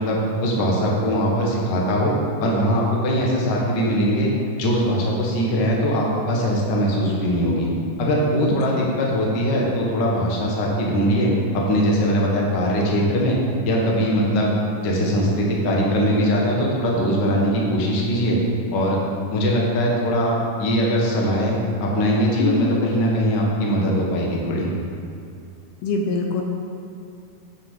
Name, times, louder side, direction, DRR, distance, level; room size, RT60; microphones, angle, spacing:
voice 1, 0.0-2.1 2.4-4.3 4.6-7.7 8.0-13.4 13.6-14.5 14.8-18.4 18.7-19.0 19.3-20.3 20.6-21.5 21.8-24.7, equal, 55° left, -3 dB, 1.2 m, -21 dB
voice 2, 8.5-8.9 22.4-22.8 25.8-26.4, left 4 dB, 80° left, 2 dB, 2.6 m, -24 dB
8.2 x 6.7 x 7.4 m, 2.5 s
omnidirectional pair, 4.5 m